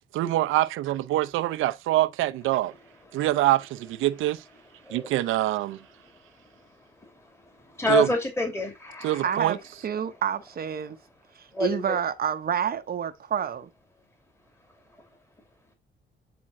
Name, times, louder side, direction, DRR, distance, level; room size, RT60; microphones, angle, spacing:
voice 1, 0.1-2.7 3.1-4.4 4.9-5.8 7.9-8.1 9.0-9.6, right 15 dB, 90° right, 0.7 m, -24 dB
voice 2, 4.8-5.1 7.0-7.1 7.6-9.3 11.5-12.0, left 2 dB, 15° left, 2.7 m, -28 dB
voice 3, 9.2-11.0 11.6-13.7, right 8 dB, 50° right, 0.8 m, -28 dB
8.8 x 3.7 x 4.2 m
cardioid pair, 90°, 20 cm